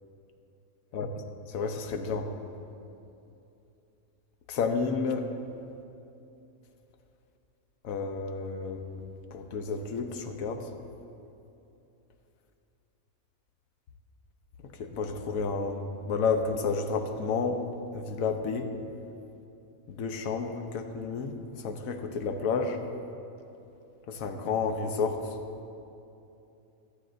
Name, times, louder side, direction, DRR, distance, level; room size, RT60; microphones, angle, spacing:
voice 1, 1.5-2.3 4.5-5.3 7.8-8.8 9.3-10.6 14.8-17.6 17.9-18.7 19.9-21.4 21.6-22.8 24.1-25.2, left 5 dB, 70° left, 6 dB, 1.2 m, -30 dB
22.0 x 8.4 x 2.6 m, 2.8 s
omnidirectional pair, 1.6 m